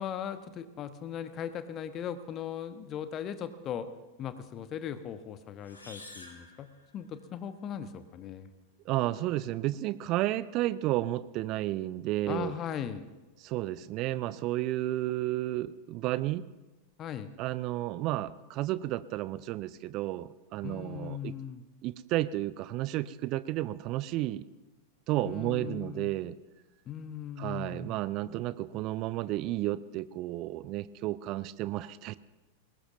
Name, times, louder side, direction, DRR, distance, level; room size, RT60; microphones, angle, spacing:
voice 1, 0.0-3.9 4.2-6.7 6.9-8.5 12.3-13.1 17.0-17.3 20.6-21.6 25.2-26.1 26.9-28.0, left 9 dB, 30° left, 11 dB, 1.1 m, -38 dB
sound 1, 5.6-7.4, left 2 dB, 80° left, 3.1 m, -50 dB
voice 2, 8.9-12.6 13.4-16.5 17.4-21.3 21.8-24.4 25.1-26.3 27.4-32.2, right 15 dB, 40° right, 17 dB, 0.6 m, -32 dB
21.5 x 19.5 x 2.7 m, 1.1 s
figure-of-eight pair, 90°, 0 cm